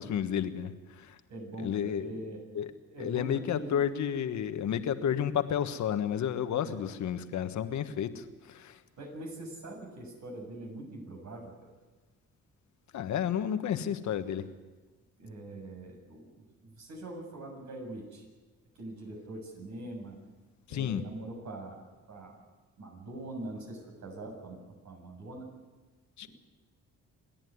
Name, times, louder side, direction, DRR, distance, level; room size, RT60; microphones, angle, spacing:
voice 1, 0.0-1.2 1.6-2.2 2.5-2.7 3.0-8.8 12.9-14.4 20.7-21.0 26.2-26.3, left 9 dB, 70° left, 10 dB, 1.4 m, -31 dB
voice 2, 1.3-2.4 2.9-3.8 6.6-6.9 9.0-11.5 15.2-18.2 18.7-20.2 20.7-22.4 22.8-24.6 24.8-25.5, right 2 dB, 70° right, 1 dB, 7.3 m, -43 dB
27.5 x 10.5 x 9.6 m, 1.3 s
cardioid pair, 90°, 30 cm